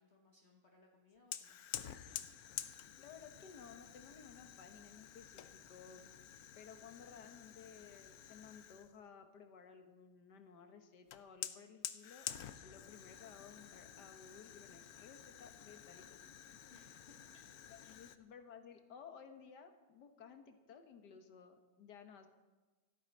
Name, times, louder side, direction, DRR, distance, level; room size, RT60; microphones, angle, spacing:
voice 1, 0.0-1.9 16.7-17.4 17.8-18.1, left 3 dB, 45° left, 0 dB, 1.5 m, -67 dB
Fire, 1.3-9.0 11.1-18.2, left 10 dB, 70° left, 1.1 m, -50 dB
voice 2, 3.0-6.1 6.5-12.3 12.6-16.3 16.8-16.9 17.7-22.3, left 6 dB, 90° left, 7 dB, 1.8 m, -57 dB
14.0 x 12.5 x 5.3 m, 1.2 s
omnidirectional pair, 1.7 m